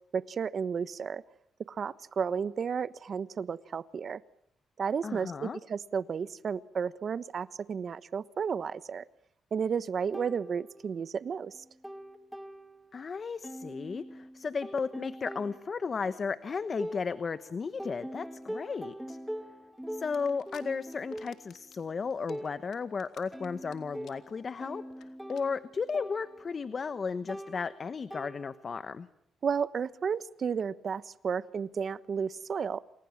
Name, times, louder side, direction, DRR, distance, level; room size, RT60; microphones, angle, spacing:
voice 1, 0.1-1.2 1.7-4.2 4.8-9.0 9.5-11.6 29.4-32.8, right 6 dB, 50° right, 15 dB, 1.2 m, -32 dB
voice 2, 5.0-5.6 12.9-19.2 19.9-29.1, left 5 dB, 40° left, 13 dB, 1.1 m, -34 dB
sound 1, 10.1-11.2 11.5-13.1 13.4-17.5 17.8-28.9, equal, 5° right, 1.8 m, -44 dB
sound 2, 20.1-20.6 21.0-21.8 22.1-23.7 24.0-24.3 24.6-24.7 24.9-25.0 25.3-25.4 25.8-25.9, left 10 dB, 80° left, 3.3 m, -55 dB
29.0 x 28.0 x 7.4 m, 0.73 s
cardioid pair, 105°, 0 cm